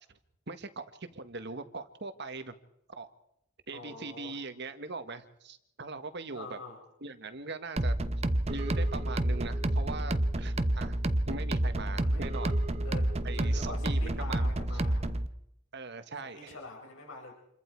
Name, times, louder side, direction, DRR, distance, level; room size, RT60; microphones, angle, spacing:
voice 1, 0.5-2.5 2.9-3.1 3.7-6.6 7.0-7.9 8.5-11.0 11.3-12.6 13.2-14.5 15.7-16.5, right 3 dB, 55° right, 9 dB, 1.7 m, -41 dB
voice 2, 3.7-4.4 6.3-6.8 12.0-12.2 12.8-15.1 16.2-17.3, left 2 dB, 70° left, 1 dB, 5.9 m, -45 dB
sound 1, 7.8-15.3, right 1 dB, 30° right, 1.0 m, -29 dB
28.0 x 23.0 x 4.8 m, 0.79 s
head